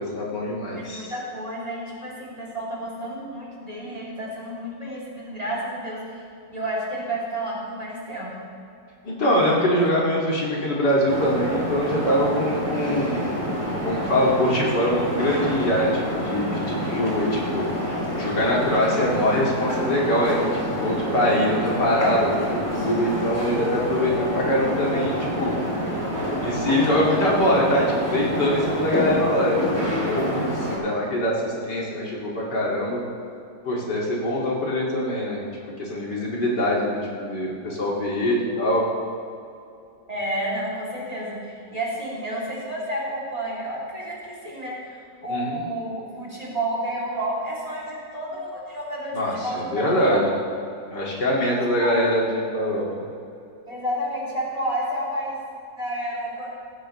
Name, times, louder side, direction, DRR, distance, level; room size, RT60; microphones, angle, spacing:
voice 1, 0.0-1.1 9.0-13.4 13.8-17.6 18.1-25.6 26.4-33.0 33.6-35.4 35.8-38.9 45.3-45.6 49.1-50.3 50.9-53.0, left 1 dB, 85° left, -4 dB, 3.1 m, -23 dB
voice 2, 0.7-6.2 6.5-8.3 9.7-9.9 40.1-50.4 51.5-52.0 53.7-55.4 55.7-56.5, right 1 dB, 20° right, -5 dB, 3.2 m, -31 dB
sound 1, 11.1-30.8, equal, 10° left, 3.3 m, -27 dB
16.0 x 15.0 x 3.3 m, 2.6 s
omnidirectional pair, 1.8 m